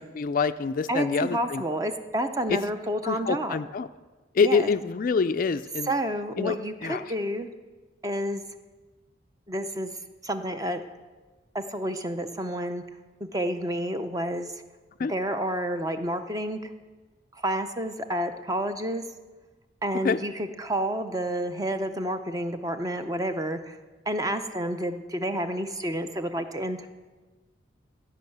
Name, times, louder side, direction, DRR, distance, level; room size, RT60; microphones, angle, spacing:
voice 1, 0.0-1.6 2.5-2.6 3.0-3.9 4.3-5.9 6.4-6.6 6.8-7.0 15.0-15.1 20.0-20.2, left 5 dB, 45° left, 12 dB, 0.3 m, -26 dB
voice 2, 0.9-3.6 4.4-4.7 5.8-7.5 8.0-8.4 9.5-9.9 10.2-10.8 11.5-12.8 13.2-14.5 15.0-16.6 17.3-19.0 19.8-23.8 24.1-26.8, right 1 dB, 20° right, 8 dB, 0.6 m, -29 dB
16.0 x 5.6 x 8.0 m, 1.3 s
head